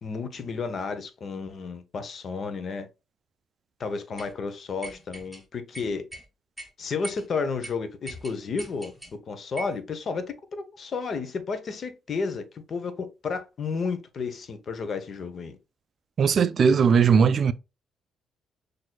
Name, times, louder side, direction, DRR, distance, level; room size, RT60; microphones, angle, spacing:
voice 1, 0.0-2.9 3.8-6.0 6.8-8.9 9.3-15.6, left 4 dB, 50° left, 0.7 m, -32 dB
sound 1, 4.2-4.3 4.8-5.4 5.7-6.3 6.6-6.7 7.0-7.3 7.6-7.7 8.1-9.1 9.6-9.8, right 1 dB, ahead, 1.2 m, -40 dB
voice 2, 16.2-17.5, right 6 dB, 50° right, 0.3 m, -19 dB
5.9 x 2.6 x 2.3 m
cardioid pair, 90°, 0 cm